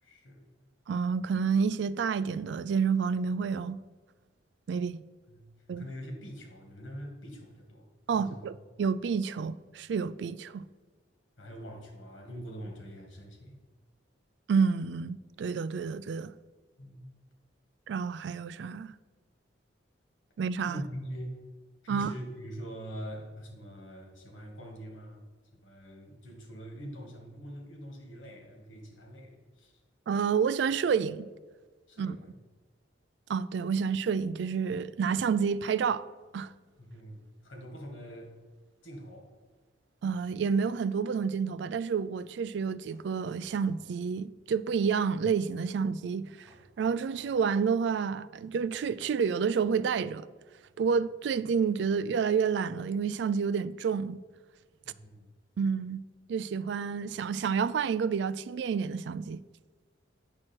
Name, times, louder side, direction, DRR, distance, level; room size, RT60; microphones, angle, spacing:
voice 1, 0.0-0.5 5.3-8.5 11.4-13.6 16.8-17.2 20.7-21.4 21.8-25.3 25.5-29.8 31.9-32.3 36.8-38.4 38.8-39.3 54.8-55.3, equal, 90° left, 1.9 m, -44 dB
voice 2, 0.9-3.8 4.7-5.0 5.7-5.9 8.1-8.5 8.8-10.6 14.5-16.3 17.9-18.9 20.4-20.8 21.9-22.1 30.1-31.3 32.0-32.2 33.3-36.0 36.3-36.5 40.0-46.5 46.8-50.3 50.8-54.2 55.6-56.0 56.3-59.4, right 6 dB, 65° right, 0.3 m, -29 dB
sound 1, 42.9-43.9 46.5-47.4, equal, 15° right, 2.0 m, -59 dB
8.7 x 6.2 x 4.5 m
head